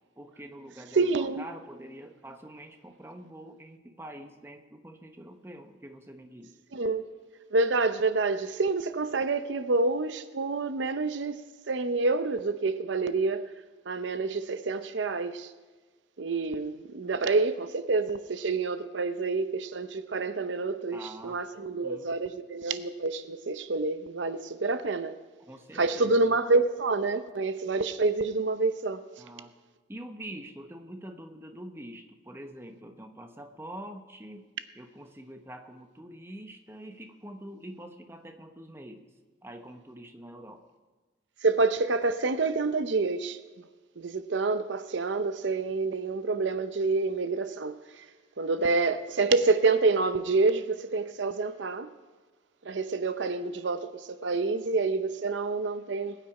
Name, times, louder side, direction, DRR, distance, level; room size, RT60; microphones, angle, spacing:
voice 1, 0.2-6.6 20.9-21.4 21.8-22.1 25.4-26.4 29.2-29.5 29.9-34.4 34.7-39.1 39.4-40.6, right 1 dB, 15° right, 0.9 m, -45 dB
voice 2, 0.9-1.4 6.7-7.1 7.5-11.4 11.7-13.4 13.9-15.5 16.2-25.2 25.7-29.0 41.4-43.4 44.0-48.0 48.4-51.9 52.6-56.2, right 3 dB, 75° right, 0.7 m, -27 dB
20.5 x 9.1 x 4.9 m
head